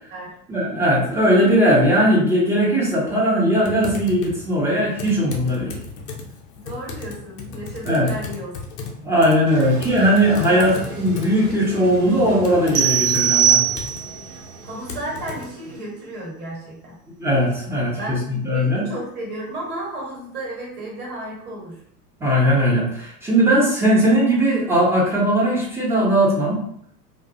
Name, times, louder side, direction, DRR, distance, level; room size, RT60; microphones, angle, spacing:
voice 1, 0.5-5.8 7.8-8.1 9.0-13.6 17.2-18.8 22.2-26.6, equal, 5° right, -6 dB, 0.7 m, -19 dB
Typing, 3.6-15.5, left 4 dB, 45° left, 0.6 m, -36 dB
voice 2, 6.6-8.6 9.0-9.1 9.5-9.7 10.5-10.6 14.6-17.0 17.9-21.8, right 1 dB, 20° right, -4 dB, 1.2 m, -33 dB
Toilet flush, 9.5-15.8, right 3 dB, 65° right, 0.9 m, -38 dB
sound 1, 12.7-14.3, right 9 dB, 50° right, 0.5 m, -19 dB
2.3 x 2.2 x 2.7 m, 0.67 s
figure-of-eight pair, 80°, 48 cm